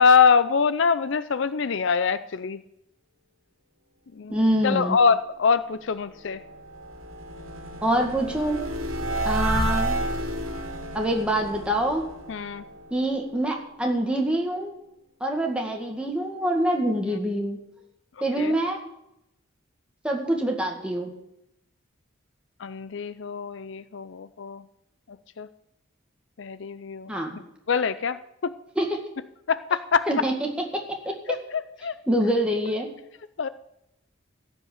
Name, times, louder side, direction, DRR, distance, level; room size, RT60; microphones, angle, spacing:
voice 1, 0.0-2.6 4.2-6.4 12.3-12.6 18.4-18.5 22.6-24.6 25.4-25.5 26.4-27.1 27.7-28.5 29.5-30.1 31.3-32.0 33.4-33.5, left 5 dB, 65° left, 14 dB, 0.5 m, -24 dB
voice 2, 4.3-5.0 7.8-8.7 9.2-10.0 10.9-12.1 12.9-14.7 15.2-17.6 18.2-18.8 20.0-21.1 27.1-27.4 28.8-29.0 30.1-31.1 32.1-32.9, right 1 dB, 5° right, 1 dB, 2.0 m, -25 dB
sound 1, 6.0-13.2, right 1 dB, 90° right, 2.1 m, -31 dB
15.5 x 5.4 x 8.7 m, 0.83 s
head